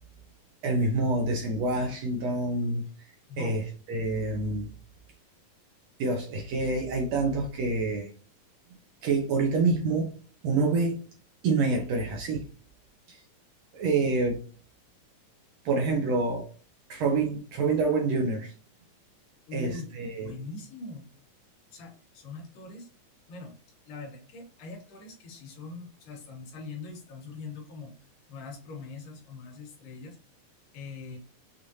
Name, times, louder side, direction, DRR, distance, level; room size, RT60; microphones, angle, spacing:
voice 1, 0.6-2.8 3.4-3.6 3.9-4.7 6.0-8.1 9.0-10.1 10.4-11.0 11.4-12.5 13.1-13.2 13.7-14.4 15.6-16.5 16.9-18.5 19.5-20.3, right 3 dB, 75° right, 1.6 m, -27 dB
voice 2, 19.5-21.1 21.7-22.9 23.3-23.5 23.9-27.9 28.3-30.2 30.7-31.2, left 3 dB, 80° left, 3.0 m, -42 dB
6.6 x 2.5 x 2.8 m
omnidirectional pair, 3.9 m